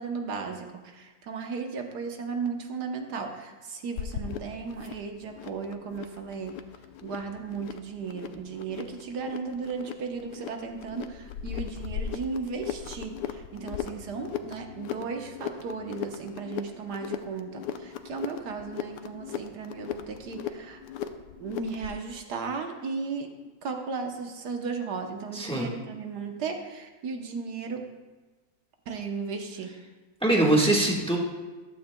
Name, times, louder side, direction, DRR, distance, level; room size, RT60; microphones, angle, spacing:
voice 1, 0.0-6.5 7.0-20.8 21.4-23.3 23.6-27.8 28.9-29.7 30.4-30.7, right 5 dB, 75° right, 4 dB, 1.5 m, -35 dB
sound 1, 4.0-22.0, left 9 dB, 90° left, 1.3 m, -38 dB
voice 2, 25.3-25.7 30.2-31.2, right 1 dB, 5° left, -1 dB, 1.2 m, -22 dB
14.5 x 12.0 x 2.2 m, 1.3 s
omnidirectional pair, 1.8 m